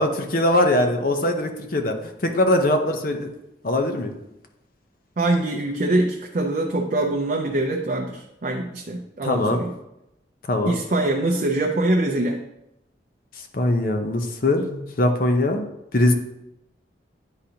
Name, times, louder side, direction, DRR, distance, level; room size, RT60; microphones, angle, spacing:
voice 1, 0.0-3.3 3.6-4.1 9.2-9.7 10.5-10.7 13.5-16.1, left 1 dB, 50° left, 5 dB, 0.7 m, -22 dB
voice 2, 5.2-9.7 10.6-12.4, right 2 dB, 45° right, 1 dB, 0.5 m, -23 dB
9.8 x 3.9 x 2.8 m, 0.87 s
head